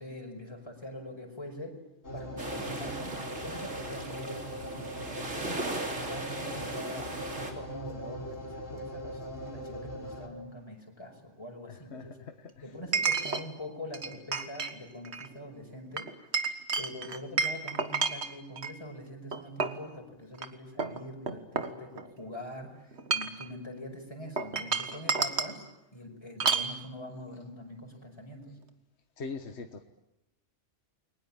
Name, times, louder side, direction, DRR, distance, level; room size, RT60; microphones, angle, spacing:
voice 1, 0.0-1.8 2.1-4.5 5.2-12.2 12.6-16.2 16.8-25.6 25.9-28.6, left 1 dB, 20° left, 2 dB, 5.6 m, -44 dB
sound 1, 2.0-10.3, equal, 80° left, 4.5 m, -41 dB
sound 2, 2.4-7.5, right 2 dB, 85° right, 3.8 m, -38 dB
Chink clink, 9.5-9.6 12.9-13.4 13.9-14.7 15.0-15.3 16.0-18.7 19.3-19.8 20.3-20.5 20.8-22.2 22.9-23.5 24.4-25.6 26.4-26.7, right 4 dB, 60° right, 1.8 m, -30 dB
voice 2, 11.7-12.6 29.2-29.8, left 4 dB, 60° left, 6 dB, 1.6 m, -42 dB
29.5 x 22.5 x 8.9 m, 0.93 s
omnidirectional pair, 1.3 m